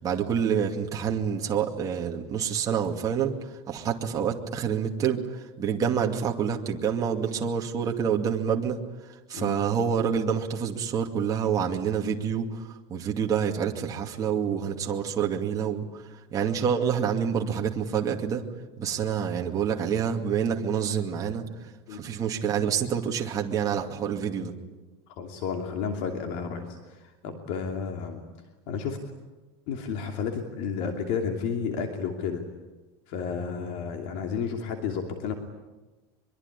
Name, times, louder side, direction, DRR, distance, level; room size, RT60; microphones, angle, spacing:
voice 1, 0.0-8.8 9.3-16.0 16.3-18.4 18.8-21.4 21.9-24.5, right 7 dB, 25° right, 1 dB, 2.4 m, -27 dB
voice 2, 25.1-28.2 28.7-29.0 29.7-32.4 33.1-35.3, left 6 dB, 60° left, 4 dB, 2.8 m, -32 dB
23.5 x 23.5 x 10.0 m, 1.2 s
supercardioid pair, 155°, 14 cm